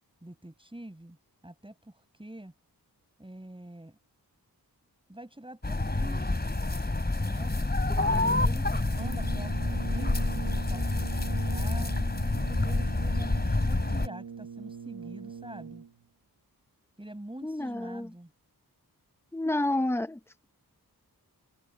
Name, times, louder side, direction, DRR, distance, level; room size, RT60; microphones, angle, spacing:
voice 1, 0.2-1.2 1.4-2.5 3.2-4.0 5.1-6.9 7.2-7.5 8.1-11.9 12.4-15.8 17.0-18.3, right 1 dB, 15° right, 7.2 m, -45 dB
sound 1, 5.6-14.1, left 2 dB, 25° left, 3.1 m, -28 dB
voice 2, 8.0-8.4 17.4-18.1 19.3-20.5, left 1 dB, 5° left, 0.9 m, -31 dB
Brass instrument, 8.9-16.1, right 6 dB, 80° right, 1.5 m, -42 dB
wide cardioid pair, 95°, 37 cm